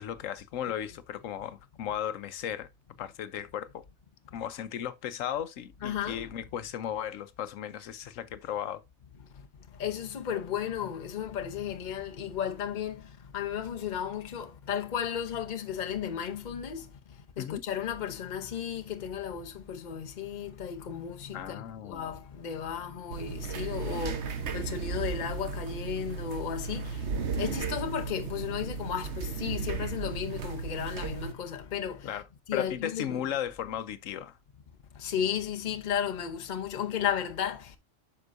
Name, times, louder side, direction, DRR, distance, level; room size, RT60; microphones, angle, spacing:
voice 1, 0.0-2.7 3.0-3.8 4.3-8.8 17.4-17.6 21.3-22.1 32.0-32.3 32.5-34.4, left 10 dB, 85° left, 1.1 m, -35 dB
voice 2, 5.8-6.3 9.8-13.0 13.3-16.8 17.4-21.6 21.8-24.2 24.5-26.8 27.4-32.0 32.5-33.2 35.0-37.6, left 8 dB, 40° left, 0.9 m, -34 dB
sound 1, 23.1-31.3, right 5 dB, 60° right, 1.2 m, -35 dB
8.0 x 6.0 x 2.6 m
omnidirectional pair, 1.3 m